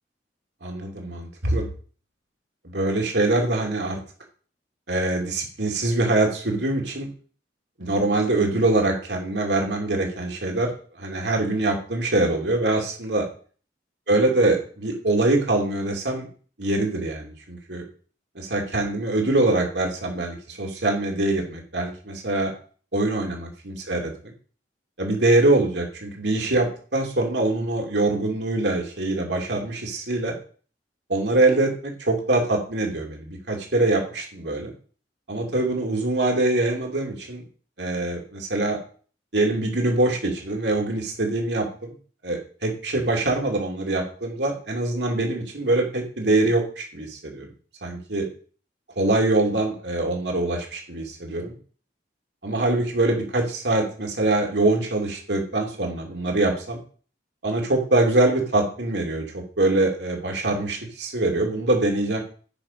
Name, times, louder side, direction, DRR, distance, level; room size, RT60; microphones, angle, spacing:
voice 1, 0.6-1.6 2.6-4.0 4.9-7.1 7.8-10.7 11.0-13.3 14.1-16.3 16.6-17.8 18.3-22.5 22.9-24.3 25.0-30.4 31.1-34.7 35.3-37.4 37.8-38.8 39.3-41.7 42.2-47.5 47.8-48.3 49.0-51.6 52.4-56.8 57.4-62.2, right 2 dB, 70° right, 1 dB, 2.7 m, -24 dB
8.8 x 6.1 x 5.2 m, 0.42 s
head